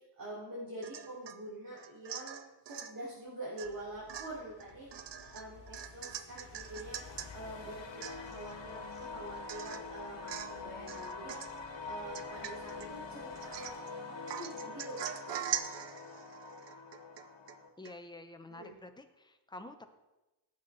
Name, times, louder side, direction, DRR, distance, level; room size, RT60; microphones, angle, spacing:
voice 1, 0.2-2.4 2.7-4.9 5.2-7.0 7.3-11.4 11.8-15.4 18.5-18.7, right 1 dB, 50° right, -8 dB, 4.5 m, -45 dB
Domestic sounds home sounds / Chink clink / Drip, 0.8-1.4 1.8-3.0 3.6-3.8 4.1-7.3 7.7-7.8 8.0-8.5 9.0-9.1 9.5-9.9 10.3-10.6 10.9-11.6 12.1-12.9 13.4-13.9 14.3-17.6 17.9-18.0, right 9 dB, 75° right, 0.8 m, -42 dB
sound 1, 3.6-13.8, left 5 dB, 65° left, 2.2 m, -57 dB
sound 2, 6.6-17.7, left 4 dB, 85° left, 1.7 m, -45 dB
voice 2, 17.8-19.9, left 2 dB, 10° left, 7 dB, 0.8 m, -49 dB
18.0 x 8.1 x 4.0 m, 1.0 s
wide cardioid pair, 145°, 43 cm